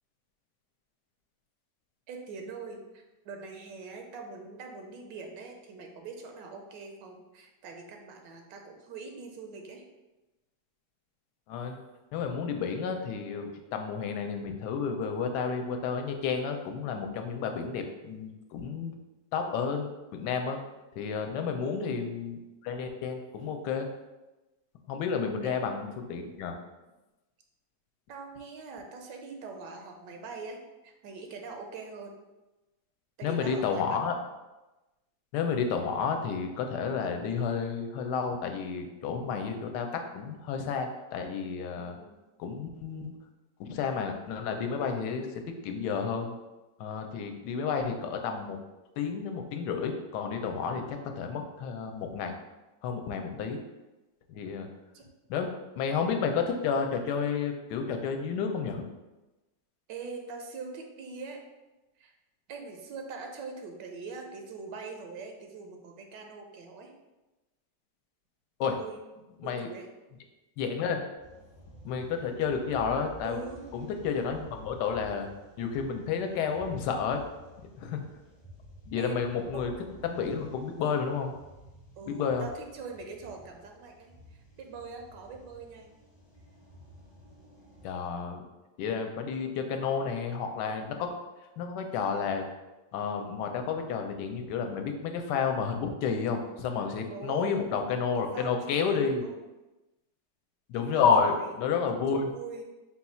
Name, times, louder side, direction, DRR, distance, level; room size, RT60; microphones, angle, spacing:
voice 1, 2.1-9.8 21.6-22.0 25.4-25.7 28.1-32.1 33.2-34.0 41.8-42.2 53.2-53.4 54.9-55.1 59.9-61.4 62.0-62.1 62.5-66.9 68.8-69.0 69.4-69.9 73.2-73.7 79.0-79.9 82.0-85.9 97.1-97.6 98.3-99.4 100.7-101.5 102.1-102.6, right 4 dB, 90° right, 3 dB, 1.3 m, -43 dB
voice 2, 12.1-18.9 19.3-20.6 21.0-23.9 24.9-26.5 33.2-34.1 35.3-42.0 42.4-43.1 43.6-46.4 46.8-48.6 49.0-52.3 52.8-53.6 54.3-54.7 55.3-55.5 55.8-58.8 68.6-68.8 69.4-69.7 70.6-71.0 71.8-73.4 73.7-75.3 75.6-77.2 77.8-78.0 78.9-79.7 80.0-81.3 82.1-82.5 87.8-88.4 88.8-91.1 91.6-92.4 92.9-99.2 100.7-102.3, left 6 dB, 75° left, 5 dB, 1.1 m, -31 dB
sound 1, 71.2-87.9, right 1 dB, 40° left, 0.3 m, -52 dB
4.1 x 2.3 x 4.2 m, 1.1 s
omnidirectional pair, 1.9 m